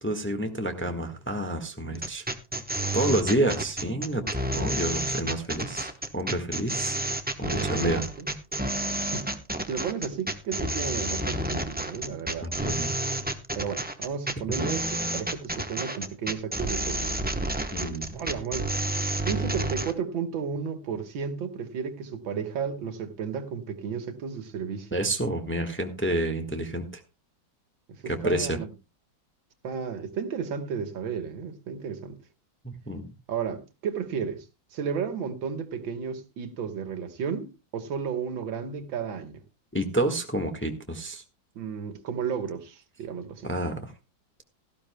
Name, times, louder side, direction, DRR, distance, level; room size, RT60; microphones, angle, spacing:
voice 1, 0.0-2.2 2.9-4.2 4.5-7.0 7.4-8.0 12.4-12.9 17.7-18.2 24.9-26.9 28.0-28.6 32.6-33.0 39.7-41.2 43.4-43.9, right 1 dB, 5° left, 1.1 m, -29 dB
sound 1, 1.9-19.9, right 1 dB, 15° right, 0.3 m, -30 dB
voice 2, 2.8-3.2 7.5-8.3 9.1-9.3 9.7-12.5 13.6-17.3 17.8-18.7 19.3-25.0 28.0-28.7 29.6-32.2 33.3-34.5 34.7-39.4 41.6-43.5, right 6 dB, 75° right, 2.0 m, -33 dB
17.5 x 13.5 x 2.2 m
omnidirectional pair, 2.1 m